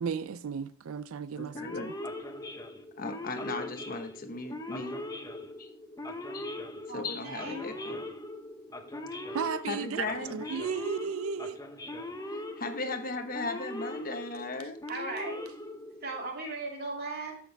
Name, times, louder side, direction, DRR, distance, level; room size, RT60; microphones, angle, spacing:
voice 1, 0.0-1.6 9.3-11.6, right 6 dB, 85° right, 0.4 m, -34 dB
voice 2, 1.4-1.9 3.0-5.0 5.6-5.7 6.3-6.5 6.9-8.0 9.7-10.4 12.3-14.8, left 3 dB, 45° left, 1.2 m, -37 dB
Male speech man speaking / Siren, 1.5-16.3, left 1 dB, 15° left, 0.9 m, -40 dB
voice 3, 6.9-7.6 14.9-15.5 16.0-17.4, right 3 dB, 50° right, 2.5 m, -37 dB
14.0 x 6.4 x 3.4 m
head